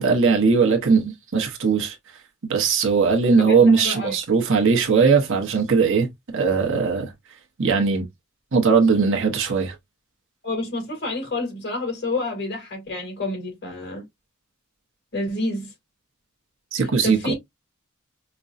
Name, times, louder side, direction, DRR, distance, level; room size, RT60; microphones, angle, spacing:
voice 1, 0.0-2.0 2.5-6.1 6.3-7.1 7.6-8.1 8.5-9.7 16.7-17.3, right 5 dB, 65° right, 1.0 m, -19 dB
voice 2, 3.4-4.2 10.4-14.0 15.1-15.7 16.8-17.3, left 2 dB, 50° left, 2.5 m, -29 dB
5.1 x 2.2 x 2.5 m
head